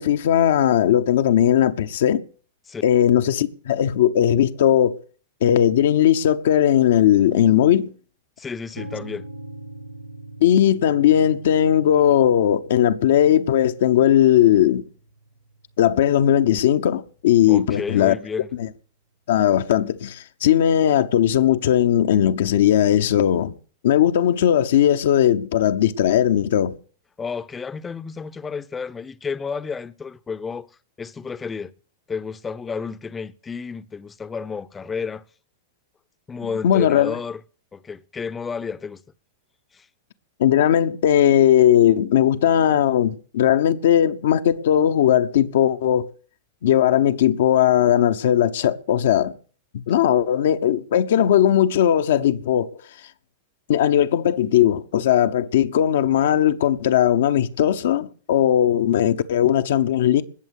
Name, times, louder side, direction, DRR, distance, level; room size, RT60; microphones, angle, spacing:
voice 1, 0.0-2.2 2.8-5.0 5.4-7.9 10.4-14.9 15.8-18.2 18.6-18.7 19.3-23.5 23.8-26.7 36.6-37.2 40.4-46.1 46.6-49.3 49.7-52.8 53.7-60.2, left 10 dB, 60° left, 0.9 m, -18 dB
voice 2, 8.4-9.3 17.5-18.5 27.2-30.7 31.0-31.7 32.1-35.2 36.3-37.4 37.7-39.0 39.7-39.9, left 5 dB, 15° left, 0.8 m, -31 dB
sound 1, 8.8-16.7, right 1 dB, 85° right, 1.5 m, -43 dB
20.0 x 7.2 x 6.8 m
figure-of-eight pair, 95°, 0 cm